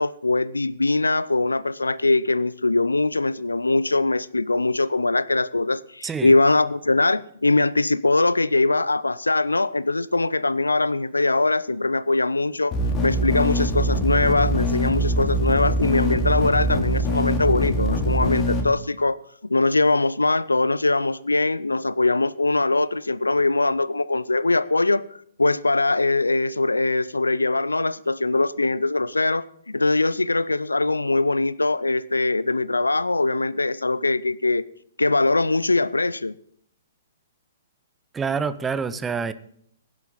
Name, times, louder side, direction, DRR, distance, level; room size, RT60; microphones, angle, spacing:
voice 1, 0.0-25.1 25.4-34.6 35.0-36.4, left 2 dB, 80° left, 0.5 m, -22 dB
sound 1, 12.7-18.6, equal, 25° left, 3.0 m, -23 dB
voice 2, 38.1-39.3, right 5 dB, 10° right, 0.7 m, -26 dB
16.0 x 11.0 x 3.9 m
figure-of-eight pair, 115°, 0 cm